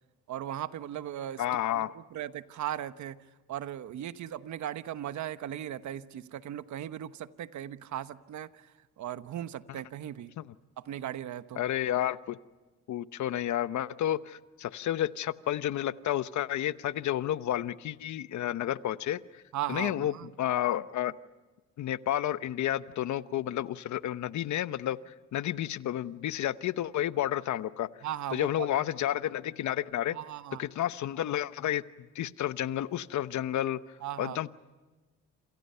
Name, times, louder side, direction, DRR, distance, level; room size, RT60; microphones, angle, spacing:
voice 1, 0.3-1.4 1.7-3.2 3.5-8.7 9.0-10.3 10.8-11.6 19.5-20.3 28.0-28.7 30.1-30.6 34.0-34.4, right 11 dB, 70° right, 12 dB, 1.1 m, -37 dB
voice 2, 1.4-1.9 10.4-10.5 11.6-12.4 12.9-19.4 19.7-20.1 20.4-21.1 21.8-27.9 28.3-30.2 30.6-31.8 32.1-33.8 34.2-34.6, left 12 dB, 70° left, 14 dB, 1.0 m, -31 dB
28.5 x 27.5 x 5.7 m, 1.3 s
cardioid pair, 90°, 30 cm